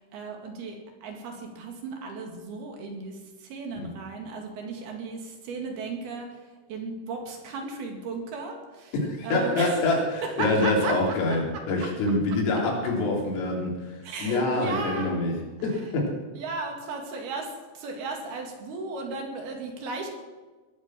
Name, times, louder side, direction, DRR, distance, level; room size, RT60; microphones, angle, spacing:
voice 1, 0.0-8.9 9.2-9.9 10.2-11.2 14.0-15.2 15.7-16.0 16.3-20.1, right 3 dB, 55° right, 2 dB, 3.8 m, -35 dB
voice 2, 8.9-15.3 15.6-16.1, left 2 dB, 90° left, -2 dB, 6.1 m, -26 dB
20.5 x 9.1 x 7.5 m, 1.3 s
omnidirectional pair, 5.7 m